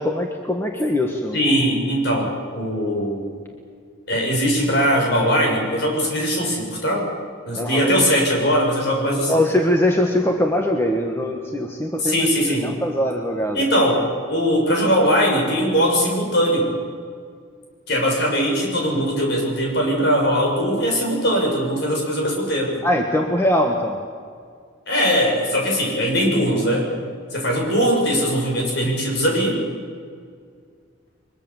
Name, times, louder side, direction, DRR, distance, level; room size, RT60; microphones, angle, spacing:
voice 1, 0.0-1.4 7.5-7.9 9.3-12.3 12.6-13.6 22.8-24.0, left 1 dB, 10° left, 1 dB, 1.5 m, -21 dB
voice 2, 1.3-3.4 4.1-7.1 7.4-9.4 12.0-12.7 13.5-16.7 17.9-22.8 24.9-26.9 27.3-29.6, equal, 55° left, 0 dB, 7.0 m, -20 dB
23.0 x 22.5 x 7.4 m, 2.1 s
head